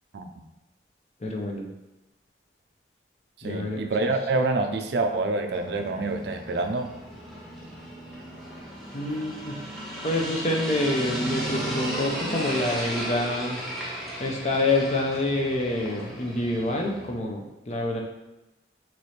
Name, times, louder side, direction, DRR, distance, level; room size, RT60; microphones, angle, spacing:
voice 1, 1.2-1.7 3.4-3.8 8.9-9.6 10.0-13.6 14.2-18.0, left 2 dB, 40° left, 1 dB, 0.5 m, -27 dB
voice 2, 3.4-6.9, right 3 dB, 65° right, 5 dB, 0.4 m, -26 dB
sound 1, 5.5-17.1, right 1 dB, ahead, 0.7 m, -35 dB
4.1 x 3.0 x 3.1 m, 0.99 s
head